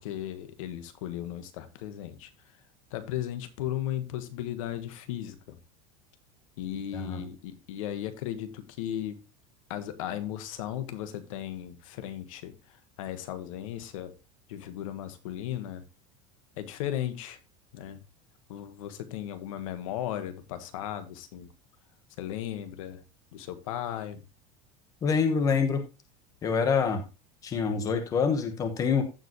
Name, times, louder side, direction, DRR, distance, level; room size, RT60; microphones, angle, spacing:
voice 1, 0.0-2.6 2.9-5.6 6.6-9.2 9.7-14.2 14.5-15.8 16.6-17.4 17.7-18.0 18.5-21.5 22.2-23.0 23.3-24.2, left 11 dB, 75° left, 1.4 m, -36 dB
voice 2, 25.0-25.8 26.4-27.0 27.4-29.0, left 5 dB, 20° left, 1.2 m, -26 dB
15.0 x 5.1 x 3.0 m
supercardioid pair, 175°, 17 cm